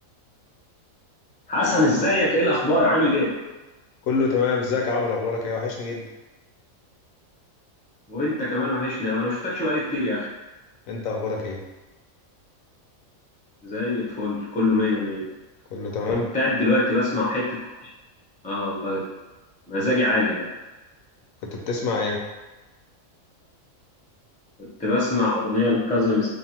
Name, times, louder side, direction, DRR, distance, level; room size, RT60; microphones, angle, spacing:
voice 1, 1.5-3.3 8.1-10.3 13.6-15.2 16.3-17.4 17.8-17.9 18.4-19.0 19.7-20.5 24.8-26.3, left 2 dB, 10° left, -6 dB, 0.3 m, -23 dB
voice 2, 4.0-6.1 10.9-11.6 15.7-16.3 21.5-22.2, left 4 dB, 85° left, -1 dB, 1.0 m, -26 dB
2.8 x 2.3 x 2.8 m, 1.1 s
omnidirectional pair, 1.4 m